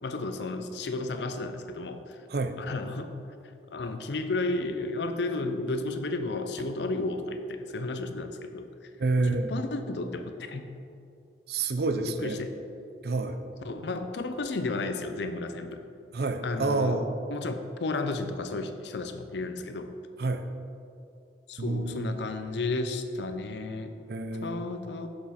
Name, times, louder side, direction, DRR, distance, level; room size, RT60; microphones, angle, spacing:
voice 1, 0.0-2.2 2.6-3.2 3.7-8.9 9.2-10.7 12.0-12.5 13.6-15.8 16.4-17.0 17.3-19.9 21.5-23.9 24.4-25.1, left 2 dB, 75° left, 8 dB, 0.6 m, -33 dB
voice 2, 9.0-9.5 11.5-12.4 13.0-13.4 16.1-17.2 20.2-20.5 21.6-22.2 24.1-24.7, right 3 dB, 60° right, 8 dB, 0.5 m, -28 dB
7.1 x 6.9 x 4.3 m, 2.6 s
head